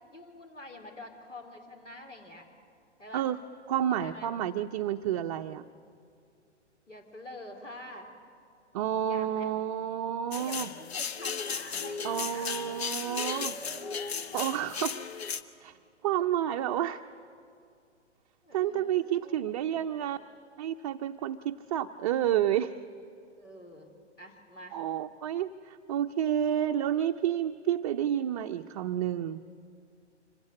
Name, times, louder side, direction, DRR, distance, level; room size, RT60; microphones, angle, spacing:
voice 1, 0.1-2.5 3.0-3.3 3.9-4.3 6.9-8.1 9.1-9.5 10.3-12.8 13.2-14.6 18.4-19.7 23.4-24.8, left 1 dB, 90° left, 4 dB, 3.6 m, -47 dB
voice 2, 3.7-5.6 8.7-10.7 12.0-13.5 14.3-14.9 15.6-15.7 16.0-17.0 18.5-20.2 20.6-22.8 24.7-29.6, right 10 dB, 30° right, 6 dB, 0.5 m, -30 dB
sound 1, 10.3-15.4, left 6 dB, 60° left, 1.1 m, -35 dB
25.0 x 16.0 x 8.7 m, 2.4 s
figure-of-eight pair, 120°, 36 cm